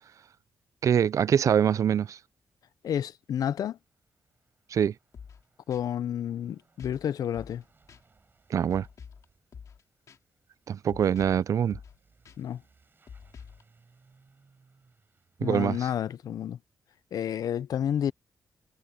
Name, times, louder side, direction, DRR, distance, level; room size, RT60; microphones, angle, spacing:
voice 1, 0.8-2.2 4.7-4.9 8.5-8.9 10.7-11.8 15.4-15.8, right 8 dB, 60° right, 0.4 m, -24 dB
Truck / Accelerating revving vroom, 2.6-2.7 2.8-16.2, right 4 dB, 35° right, 7.3 m, -66 dB
voice 2, 2.8-3.8 5.7-7.6 12.4-12.6 15.4-16.6 17.1-18.1, left 9 dB, 80° left, 0.6 m, -30 dB
sound 1, 5.1-5.4 5.7-5.8 6.8-7.1 7.3-7.6 7.9-8.0 8.7-9.2 9.5-9.8 10.1-10.2 10.9-11.4 11.7-12.0 12.2-12.4 13.1-13.6, left 6 dB, 60° left, 2.6 m, -47 dB
wide cardioid pair, 130°, 6 cm